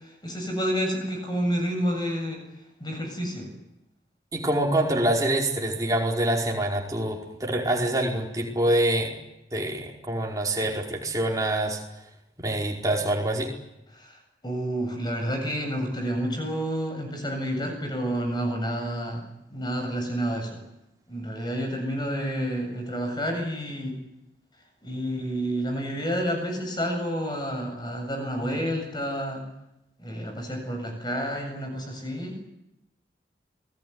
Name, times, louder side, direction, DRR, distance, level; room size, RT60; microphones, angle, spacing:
voice 1, 0.2-2.4 2.8-3.5 13.9-14.1 14.4-20.6 21.1-24.0 24.8-29.4 30.0-32.4, equal, 25° left, 4 dB, 7.7 m, -29 dB
voice 2, 4.3-9.1 9.5-11.8 12.4-13.5, right 1 dB, 20° right, -1 dB, 4.9 m, -25 dB
28.5 x 19.5 x 9.7 m, 0.90 s
head